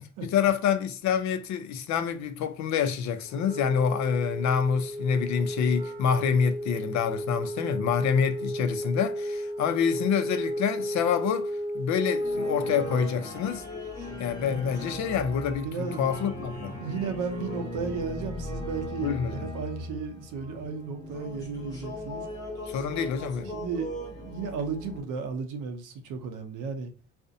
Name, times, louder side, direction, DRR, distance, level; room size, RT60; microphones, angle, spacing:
voice 1, 0.2-13.6 14.2-16.8 19.0-19.5 22.7-23.5, left 7 dB, 65° left, 0.5 m, -27 dB
Wind instrument woodwind instrument, 3.3-13.0, equal, 20° right, 0.5 m, -33 dB
sound 1, 12.2-25.0, equal, 10° left, 1.0 m, -38 dB
voice 2, 15.6-16.1 16.8-22.3 23.5-26.9, right 5 dB, 90° right, 0.6 m, -34 dB
2.5 x 2.1 x 2.5 m
cardioid pair, 90°, 30 cm